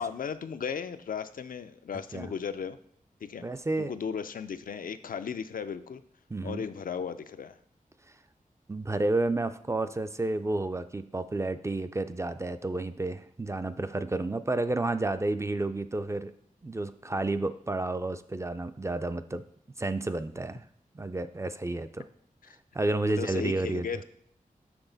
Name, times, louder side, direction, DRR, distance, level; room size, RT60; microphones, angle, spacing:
voice 1, 0.0-2.8 3.2-3.5 3.8-6.0 6.4-7.6 22.5-22.6 23.0-24.0, left 6 dB, 75° left, 11 dB, 0.4 m, -36 dB
voice 2, 3.4-3.9 6.3-6.6 8.7-16.3 16.6-19.4 19.8-20.6 20.9-22.0 22.7-23.9, right 2 dB, 20° right, 11 dB, 0.3 m, -31 dB
6.2 x 6.1 x 3.9 m, 0.66 s
wide cardioid pair, 90°, 14 cm